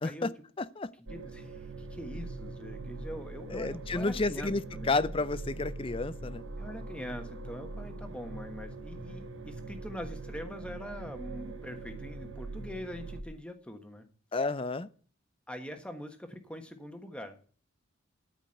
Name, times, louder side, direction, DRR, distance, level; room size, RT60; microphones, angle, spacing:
voice 1, 0.0-0.3 0.6-0.9 3.5-6.4 14.3-14.9, left 3 dB, 25° left, 0.4 m, -31 dB
voice 2, 1.1-4.9 6.6-14.0 15.5-17.4, left 1 dB, 5° left, 1.3 m, -43 dB
sound 1, 1.1-13.2, right 2 dB, 65° right, 1.1 m, -42 dB
13.0 x 5.2 x 7.6 m
head